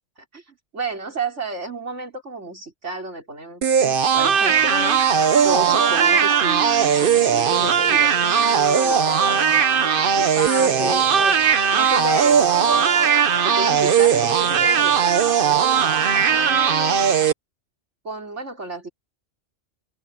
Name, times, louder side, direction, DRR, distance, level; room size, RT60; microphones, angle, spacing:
voice 1, 0.3-5.0 5.4-11.4 11.7-12.9 13.4-15.4 16.2-17.0 18.0-18.9, right 2 dB, 80° right, 5.2 m, -31 dB
sound 1, 3.6-17.3, right 7 dB, 50° right, 1.0 m, -18 dB
open air
omnidirectional pair, 1.2 m